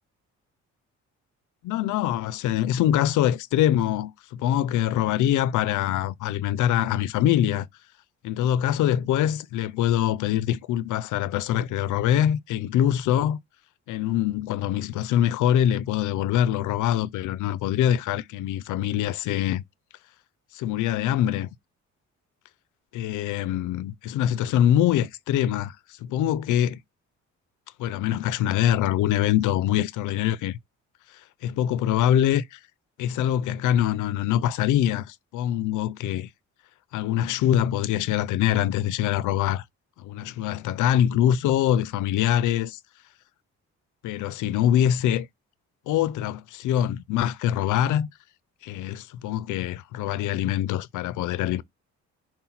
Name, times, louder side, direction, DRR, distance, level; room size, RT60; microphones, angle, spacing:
voice 1, 1.6-7.7 8.2-13.4 13.9-19.6 20.5-21.5 22.9-26.8 27.8-30.6 31.4-32.6 33.0-36.3 36.9-39.6 40.0-42.8 44.0-45.3 45.9-48.1 48.6-51.6, left 11 dB, 80° left, 0.5 m, -24 dB
5.7 x 2.2 x 4.1 m
cardioid pair, 90°, 30 cm